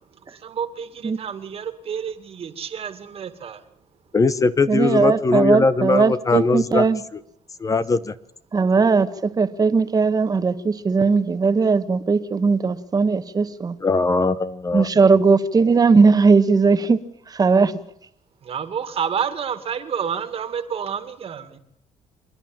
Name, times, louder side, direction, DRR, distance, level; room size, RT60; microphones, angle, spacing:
voice 1, 0.4-3.6 18.5-21.6, right 7 dB, 50° right, 10 dB, 2.2 m, -29 dB
voice 2, 4.1-6.8 7.6-8.1 13.8-14.9, left 4 dB, 25° left, 14 dB, 0.9 m, -20 dB
voice 3, 4.7-7.0 8.5-13.7 14.7-17.0 17.3-17.8, right 4 dB, 30° right, 11 dB, 1.4 m, -18 dB
27.0 x 11.0 x 8.9 m, 0.74 s
cardioid pair, 100°, 13 cm